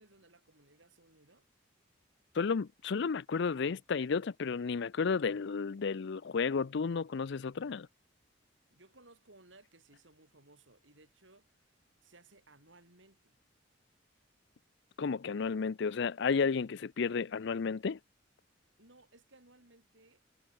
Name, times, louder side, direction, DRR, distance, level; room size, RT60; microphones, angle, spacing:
voice 1, 0.0-1.4 8.7-11.6 12.0-13.4 18.8-20.2, right 2 dB, 70° right, 6.5 m, -61 dB
voice 2, 2.4-7.9 15.0-18.0, left 5 dB, 60° left, 0.5 m, -32 dB
head